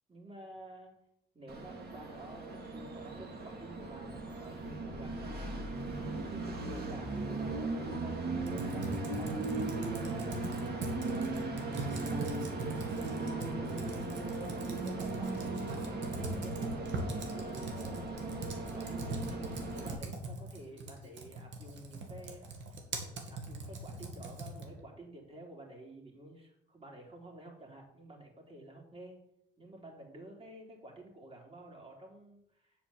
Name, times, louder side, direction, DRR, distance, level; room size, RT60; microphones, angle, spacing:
voice 1, 0.1-0.9 1.3-5.6 6.3-11.3 11.9-12.5 13.0-13.8 14.4-18.1 18.5-22.4 23.3-29.2 29.6-32.7, right 2 dB, 30° right, 0 dB, 3.8 m, -51 dB
Train, 1.5-19.9, right 3 dB, 55° right, 2.8 m, -38 dB
Computer keyboard, 8.4-24.8, right 2 dB, 70° right, 2.3 m, -42 dB
8.4 x 6.0 x 7.4 m, 0.75 s
cardioid pair, 90°, 20 cm